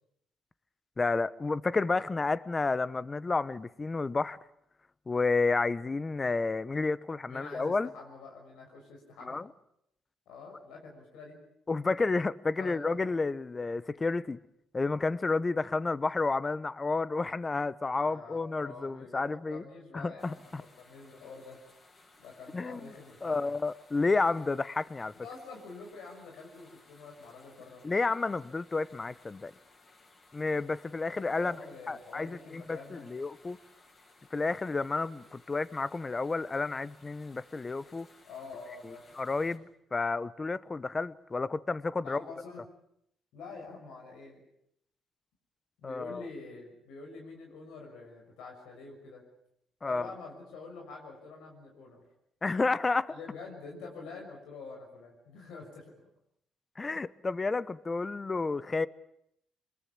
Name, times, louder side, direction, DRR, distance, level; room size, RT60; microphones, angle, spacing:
voice 1, 1.0-4.4 5.1-7.9 9.3-9.5 11.7-14.4 14.7-19.6 19.9-20.6 22.5-22.8 23.2-25.1 27.8-29.5 30.3-31.5 31.9-33.6 34.3-38.1 39.2-42.2 45.8-46.2 49.8-50.1 52.4-53.1 56.8-58.9, left 3 dB, 25° left, 1.0 m, -31 dB
voice 2, 7.2-9.4 10.3-11.4 12.6-13.0 17.9-21.6 22.2-23.5 25.2-27.8 31.1-33.1 38.2-39.6 42.0-42.6 43.3-44.4 45.8-49.2 49.8-52.0 53.1-55.9, left 4 dB, 90° left, 6.4 m, -47 dB
sound 1, 20.2-39.6, left 2 dB, 45° left, 7.2 m, -60 dB
25.0 x 21.5 x 8.7 m
cardioid pair, 90°, 0 cm